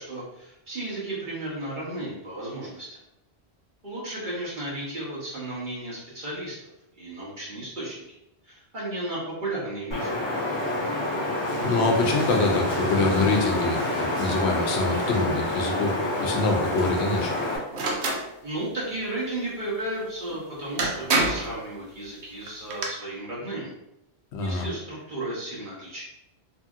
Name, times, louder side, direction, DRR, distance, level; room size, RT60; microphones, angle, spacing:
voice 1, 0.0-3.0 3.8-6.6 6.9-8.0 8.4-10.2 18.4-23.7 24.4-26.0, right 1 dB, 50° right, -7 dB, 1.0 m, -34 dB
Wind, 9.9-17.6, left 1 dB, 30° left, 0.6 m, -27 dB
voice 2, 11.6-17.3 24.3-24.7, left 3 dB, 90° left, 2 dB, 0.9 m, -25 dB
sound 1, 17.7-18.2 20.3-20.4 20.8-21.5 22.5-22.9, right 3 dB, 80° right, 0.9 m, -25 dB
2.8 x 2.7 x 2.4 m, 0.85 s
omnidirectional pair, 1.1 m